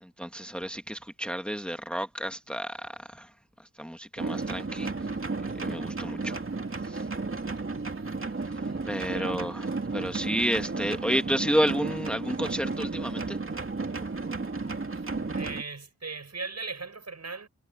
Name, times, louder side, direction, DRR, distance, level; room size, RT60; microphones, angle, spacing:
voice 1, 0.0-3.3 3.6-4.9 5.6-6.4 6.8-7.1 8.8-9.6 9.9-13.4, equal, 5° left, 1.5 m, -31 dB
sound 1, 4.2-15.6, right 3 dB, 45° right, 2.5 m, -33 dB
voice 2, 8.7-9.4 14.9-15.0 15.3-17.5, right 4 dB, 60° right, 6.2 m, -39 dB
wide cardioid pair, 90°, 29 cm